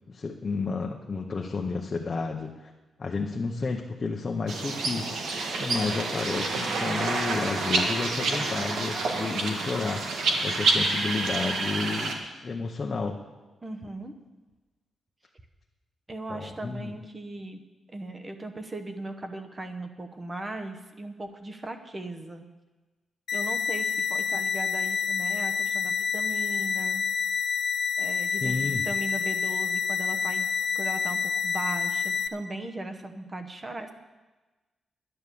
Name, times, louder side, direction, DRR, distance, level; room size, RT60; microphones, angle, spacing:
voice 1, 0.1-2.7 3.0-13.2 16.3-16.9 28.4-28.8, left 4 dB, 30° left, 1 dB, 0.8 m, -31 dB
sound 1, 4.5-12.1, right 3 dB, 85° right, 1.7 m, -28 dB
voice 2, 13.6-14.1 16.1-17.6 17.9-22.5 23.3-27.0 28.0-30.5 30.7-33.9, right 2 dB, 20° right, 6 dB, 0.9 m, -38 dB
sound 2, 23.3-32.3, left 6 dB, 60° left, 0.6 m, -28 dB
11.0 x 9.6 x 6.9 m, 1.2 s
wide cardioid pair, 175°, 0 cm